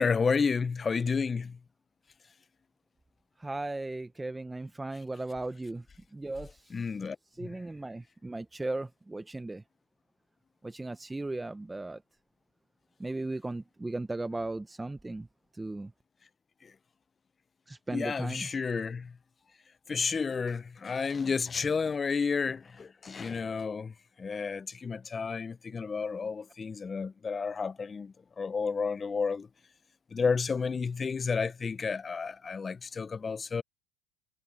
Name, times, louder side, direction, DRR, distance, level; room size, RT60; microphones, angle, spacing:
voice 1, 0.0-1.6 6.7-7.6 16.6-16.7 17.9-19.1 19.9-23.9 24.2-29.5 30.1-33.6, left 5 dB, 25° left, 0.8 m, -31 dB
voice 2, 3.4-5.8 6.1-6.6 7.4-9.6 10.6-12.0 13.0-15.3 15.6-15.9 17.7-18.5, right 2 dB, 10° right, 0.9 m, -36 dB
supercardioid pair, 100°, 0 cm